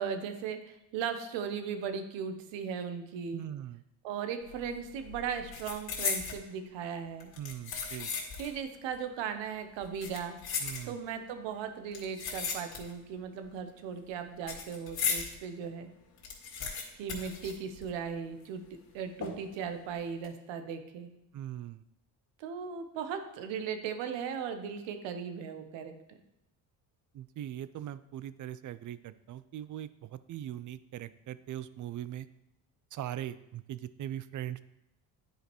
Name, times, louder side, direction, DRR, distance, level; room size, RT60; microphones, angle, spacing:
voice 1, 0.0-3.4 4.0-7.3 8.4-10.4 10.8-15.9 17.0-18.6 18.9-21.1 22.4-25.9, right 7 dB, 85° right, 8 dB, 0.9 m, -37 dB
voice 2, 3.3-3.8 7.4-8.1 10.6-11.0 21.3-21.8 27.1-32.3 32.9-34.6, right 11 dB, 45° right, 15 dB, 0.4 m, -40 dB
sound 1, 4.5-4.7 5.0-6.4 7.2-8.6 8.9-9.0 9.8-11.2 11.9-13.1 13.4-15.3 15.7-15.8 16.0-18.2 18.4-18.5 19.2-19.6 20.0-20.3, left 6 dB, 55° left, 1.9 m, -36 dB
9.9 x 5.0 x 3.0 m, 0.87 s
supercardioid pair, 80°, 44 cm